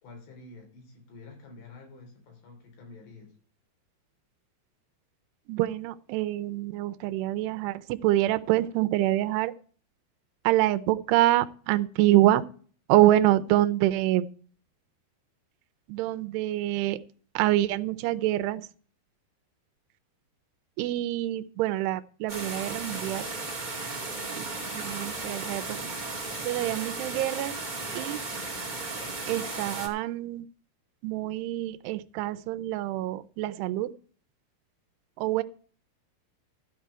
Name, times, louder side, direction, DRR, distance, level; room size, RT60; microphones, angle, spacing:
voice 1, 0.0-3.3, left 3 dB, 85° left, 1 dB, 5.7 m, -48 dB
voice 2, 5.5-9.5 10.4-12.5 12.9-14.3 15.9-17.0 17.4-18.7 20.8-23.3 24.4-24.5 24.8-25.8 26.4-27.6 28.0-28.2 29.3-30.4 31.0-33.9 35.2-35.4, right 15 dB, 85° right, 10 dB, 2.7 m, -26 dB
sound 1, 22.3-29.9, right 3 dB, 35° right, 0.7 m, -35 dB
13.0 x 4.7 x 8.8 m, 0.44 s
omnidirectional pair, 4.7 m